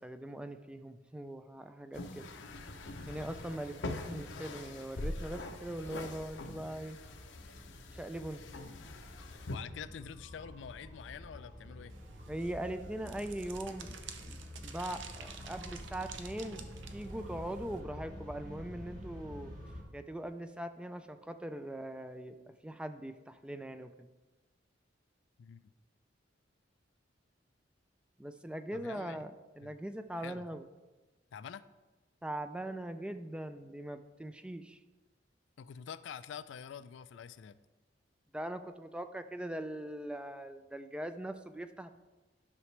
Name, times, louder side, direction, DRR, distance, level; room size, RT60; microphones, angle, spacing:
voice 1, 0.0-2.3 3.1-7.0 7.9-8.4 12.3-14.0 14.3-16.6 16.9-19.5 19.9-22.4 22.6-24.1 28.2-30.6 32.2-34.8 38.3-41.9, right 1 dB, 5° right, 9 dB, 0.3 m, -41 dB
sound 1, 1.9-9.6, left 2 dB, 90° left, 0.8 m, -43 dB
sound 2, 4.6-19.8, equal, 45° right, 1.9 m, -49 dB
voice 2, 9.5-11.9 25.4-25.6 28.7-29.2 29.6-29.7 30.2-30.5 31.3-31.6 35.6-37.6, left 7 dB, 75° left, 14 dB, 0.3 m, -46 dB
sound 3, 11.9-17.8, right 6 dB, 80° right, 0.7 m, -51 dB
11.0 x 6.0 x 3.2 m, 1.2 s
head